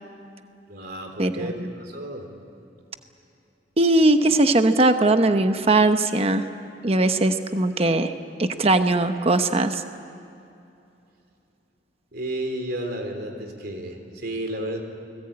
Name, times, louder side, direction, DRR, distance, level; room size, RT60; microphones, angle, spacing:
voice 1, 0.7-2.3 12.1-14.8, right 1 dB, 55° right, 5 dB, 3.6 m, -32 dB
voice 2, 1.2-1.5 3.8-6.4 6.8-8.1 8.4-9.8, right 2 dB, 35° right, 8 dB, 1.0 m, -20 dB
29.5 x 21.0 x 8.8 m, 2.7 s
head